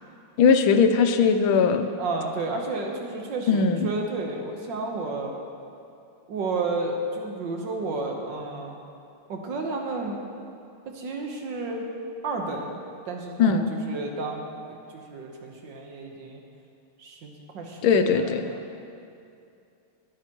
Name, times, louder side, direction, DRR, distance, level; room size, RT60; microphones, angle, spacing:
voice 1, 0.4-1.9 3.5-3.9 13.4-13.7 17.8-18.5, left 5 dB, 80° left, 8 dB, 1.5 m, -19 dB
voice 2, 2.0-5.4 6.3-8.8 9.3-10.2 10.9-11.8 12.2-12.8 13.1-14.5 14.9-16.4 17.0-17.8 18.1-18.6, right 3 dB, 65° right, 1 dB, 1.7 m, -32 dB
19.5 x 8.9 x 3.0 m, 2.5 s
omnidirectional pair, 2.3 m